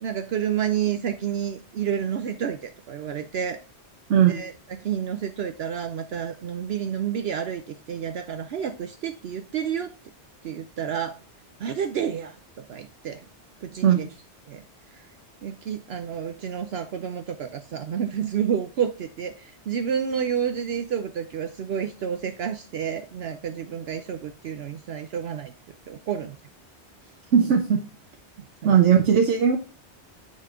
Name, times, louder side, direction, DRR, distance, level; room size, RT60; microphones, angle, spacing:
voice 1, 0.0-3.6 4.2-9.9 10.4-11.2 11.6-13.3 13.6-14.1 14.5-14.6 14.9-15.1 15.4-25.5 25.9-26.4 27.4-27.5 28.6-28.8, right 8 dB, 70° right, 8 dB, 0.8 m, -30 dB
voice 2, 4.1-4.4 13.8-14.1 27.3-27.8 28.6-29.6, right 8 dB, 90° right, 3 dB, 1.1 m, -18 dB
9.5 x 3.9 x 3.6 m, 0.33 s
omnidirectional pair, 1.2 m